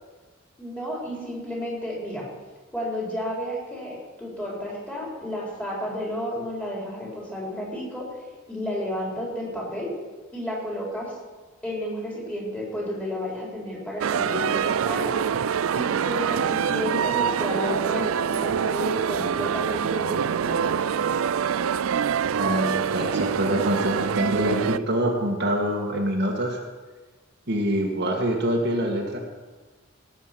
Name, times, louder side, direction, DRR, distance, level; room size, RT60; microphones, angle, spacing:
voice 1, 0.6-2.2 2.7-8.1 8.5-9.9 10.3-11.1 11.6-15.2 15.7-20.6, equal, 5° left, -4 dB, 4.2 m, -32 dB
sound 1, 14.0-24.8, right 7 dB, 85° right, 0.4 m, -25 dB
voice 2, 22.3-26.6 27.5-29.2, equal, 55° right, 0 dB, 1.9 m, -25 dB
18.0 x 8.0 x 6.0 m, 1.3 s
head